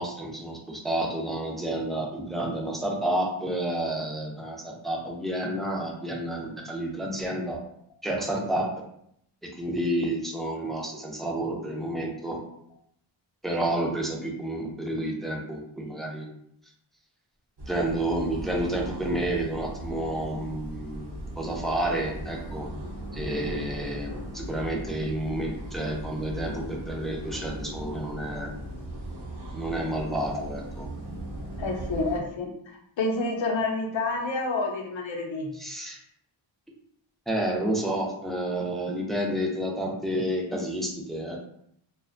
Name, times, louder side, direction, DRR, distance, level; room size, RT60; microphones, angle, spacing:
voice 1, 0.0-7.6 8.0-8.7 9.6-12.4 13.4-16.3 17.7-21.1 21.4-22.7 23.1-28.5 29.5-30.9 35.6-36.0 37.3-41.4, right 1 dB, ahead, -1 dB, 0.3 m, -30 dB
sound 1, 17.6-32.2, right 1 dB, 55° right, 0.7 m, -38 dB
voice 2, 31.6-35.5, left 3 dB, 65° left, 1 dB, 0.6 m, -29 dB
2.4 x 2.1 x 2.5 m, 0.71 s
wide cardioid pair, 115°, 49 cm